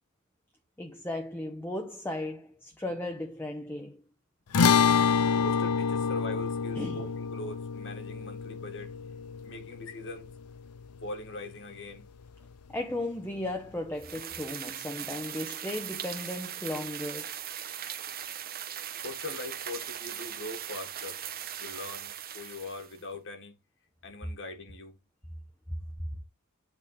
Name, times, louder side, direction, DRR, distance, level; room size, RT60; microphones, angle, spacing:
voice 1, 0.8-4.0 6.7-7.1 12.7-17.3, left 1 dB, 10° left, 0.9 m, -36 dB
sound 1, 4.5-11.1, left 6 dB, 85° left, 0.6 m, -27 dB
voice 2, 5.4-8.9 9.4-10.3 11.0-12.1 15.0-15.3 19.0-21.2 21.6-23.5 24.0-25.0, left 2 dB, 60° left, 1.7 m, -41 dB
sound 2, 14.0-23.0, right 10 dB, 45° right, 0.8 m, -39 dB
8.6 x 4.1 x 4.0 m
head